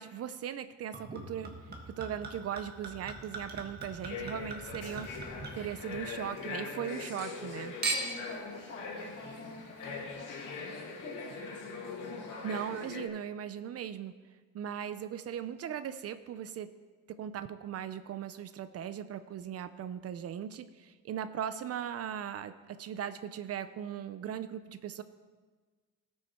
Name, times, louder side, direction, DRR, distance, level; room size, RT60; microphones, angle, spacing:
voice 1, 0.0-1.5 1.9-5.1 5.5-7.7 11.7-11.8 12.4-14.2 14.5-16.7 17.1-25.0, right 9 dB, 55° right, 12 dB, 0.4 m, -38 dB
Chink clink / Liquid, 0.9-6.4 6.8-7.5 7.8-8.3 9.1-9.2, right 3 dB, 30° right, 1.5 m, -40 dB
sound 1, 4.1-13.1, left 4 dB, 85° left, 2.0 m, -42 dB
voice 2, 7.9-11.4, left 2 dB, 45° left, -4 dB, 3.2 m, -47 dB
17.5 x 6.4 x 4.3 m, 1.4 s
cardioid pair, 165°, 31 cm